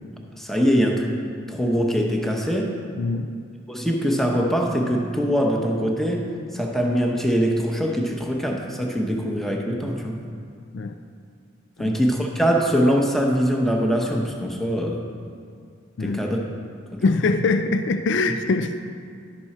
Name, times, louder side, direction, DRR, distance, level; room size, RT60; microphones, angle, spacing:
voice 1, 0.4-1.2 1.5-2.7 3.7-6.3 6.5-10.2 11.8-15.0 16.0-16.4 16.9-17.2, equal, ahead, 0 dB, 0.8 m, -23 dB
voice 2, 3.0-3.3 10.7-11.0 11.8-12.0 16.0-16.2 17.0-18.8, left 3 dB, 65° left, 8 dB, 0.4 m, -23 dB
11.0 x 6.2 x 4.2 m, 2.2 s
head